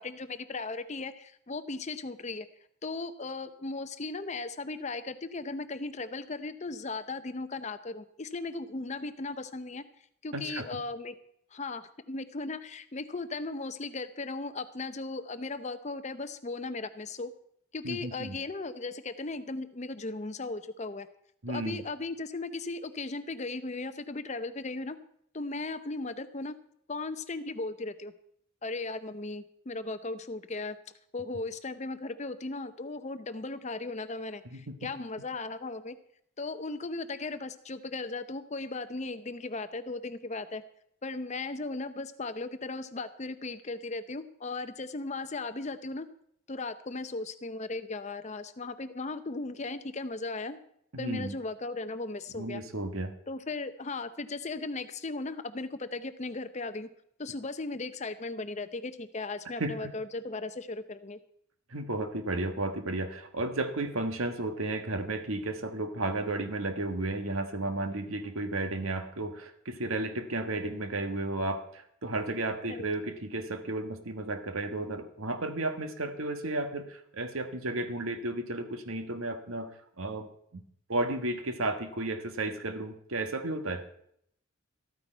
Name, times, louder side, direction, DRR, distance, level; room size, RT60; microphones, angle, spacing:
voice 1, 0.0-2.5 2.8-9.8 10.2-11.1 11.5-17.3 17.7-21.1 21.5-25.0 25.3-26.5 26.9-28.1 28.6-30.8 31.1-36.0 36.4-40.6 41.0-46.1 46.5-50.6 51.0-52.6 53.3-56.9 57.2-61.2 72.7-72.9, left 3 dB, 30° left, 12 dB, 0.6 m, -37 dB
voice 2, 10.3-10.8 17.8-18.4 21.4-21.8 34.4-34.9 50.9-51.3 52.3-53.1 59.6-59.9 61.7-79.7 80.0-80.3 80.5-80.6 80.9-83.8, right 2 dB, 70° right, 8 dB, 1.3 m, -33 dB
13.5 x 13.0 x 4.5 m, 0.70 s
head